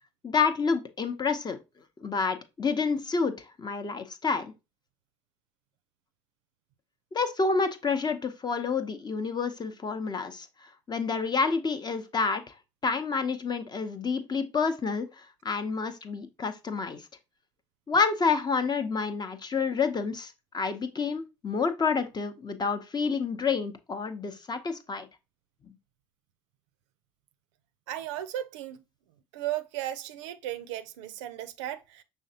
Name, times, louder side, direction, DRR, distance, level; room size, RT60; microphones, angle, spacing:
voice 1, 0.2-1.6 2.0-4.5 7.1-12.4 12.8-17.0 17.9-25.1, left 5 dB, 30° left, 0.6 m, -29 dB
voice 2, 27.9-28.8 29.3-32.0, right 13 dB, 80° right, 0.4 m, -35 dB
5.5 x 3.4 x 2.7 m
hypercardioid pair, 65°, 15 cm